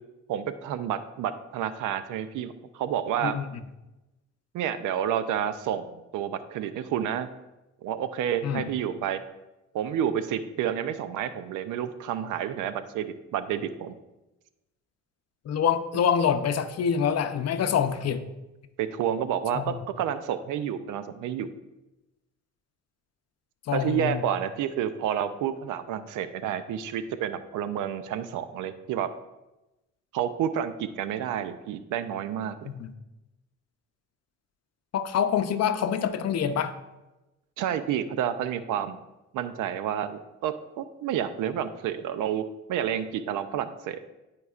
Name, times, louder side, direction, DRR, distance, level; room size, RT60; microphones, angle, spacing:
voice 1, 0.3-3.4 4.5-7.3 7.8-9.2 9.7-14.0 18.8-21.5 23.7-29.1 30.1-32.7 37.6-39.0 39.3-44.0, right 9 dB, 85° right, 12 dB, 0.6 m, -30 dB
voice 2, 15.5-18.2 19.5-19.8 23.7-24.2 32.7-32.9 34.9-36.8, left 8 dB, 60° left, 10 dB, 0.7 m, -26 dB
12.0 x 4.7 x 2.4 m, 1.0 s
cardioid pair, 90°, 30 cm